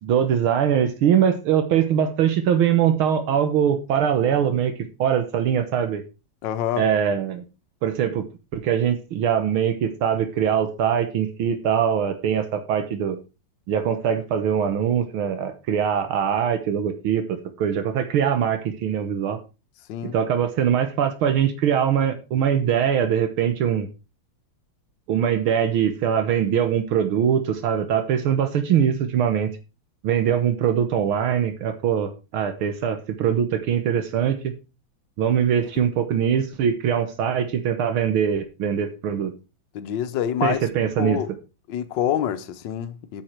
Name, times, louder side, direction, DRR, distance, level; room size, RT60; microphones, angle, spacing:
voice 1, 0.0-4.7 5.0-6.0 6.8-7.4 7.8-8.3 8.5-13.2 13.7-17.2 17.6-19.4 20.1-23.9 25.1-29.5 30.0-34.4 35.2-39.3 40.4-41.2, right 8 dB, 80° right, 2.0 m, -22 dB
voice 2, 6.4-6.9 19.9-20.1 39.7-40.7 41.0-41.3 41.7-43.2, left 10 dB, 65° left, 1.5 m, -26 dB
9.0 x 7.7 x 4.5 m
omnidirectional pair, 2.3 m